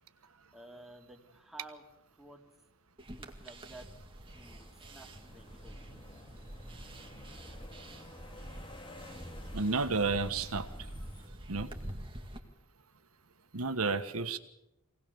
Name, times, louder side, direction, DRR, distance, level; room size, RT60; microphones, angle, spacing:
voice 1, 0.5-1.8 2.2-2.4 3.2-3.9 4.3-5.9, right 1 dB, ahead, 1 dB, 2.9 m, -53 dB
sound 1, 3.0-12.4, right 1 dB, 25° right, 2.1 m, -46 dB
sound 2, 4.3-11.3, left 1 dB, 25° left, 2.2 m, -52 dB
voice 2, 9.5-10.7 11.5-11.7 13.5-14.4, right 4 dB, 85° right, 10 dB, 1.4 m, -31 dB
24.5 x 18.0 x 7.0 m, 0.89 s
head